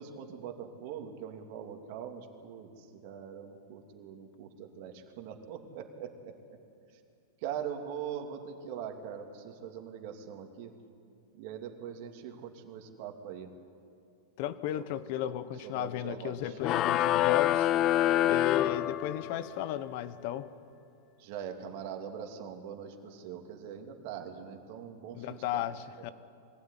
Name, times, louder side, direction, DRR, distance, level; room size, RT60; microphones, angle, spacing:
voice 1, 0.0-6.6 7.4-10.7 11.3-13.5 14.7-14.8 15.6-16.6 21.2-25.7, right 8 dB, 45° right, 3 dB, 2.6 m, -42 dB
voice 2, 14.4-17.7 18.2-20.5 25.1-26.1, left 11 dB, 45° left, 14 dB, 1.1 m, -35 dB
sound 1, 16.6-19.5, left 13 dB, 30° left, 0.5 m, -26 dB
22.5 x 16.5 x 9.9 m, 2.5 s
supercardioid pair, 155°, 0 cm